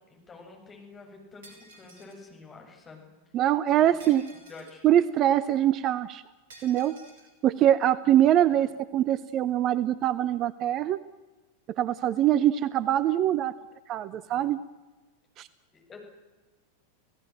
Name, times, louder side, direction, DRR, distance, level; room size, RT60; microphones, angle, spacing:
voice 1, 0.0-3.1 3.7-4.2 4.4-4.8 8.5-8.7 14.2-14.5 15.7-16.0, left 3 dB, 20° left, 1 dB, 8.0 m, -49 dB
Shatter, 1.4-2.2 4.0-4.9 6.5-7.3, right 2 dB, 60° right, 6.4 m, -52 dB
voice 2, 3.3-4.2 4.8-6.2 6.6-7.0 7.4-11.0 11.8-13.5 13.9-14.6 15.4-15.5, right 11 dB, 35° right, 17 dB, 0.8 m, -23 dB
29.0 x 17.5 x 7.9 m, 1.2 s
figure-of-eight pair, 90°, 0 cm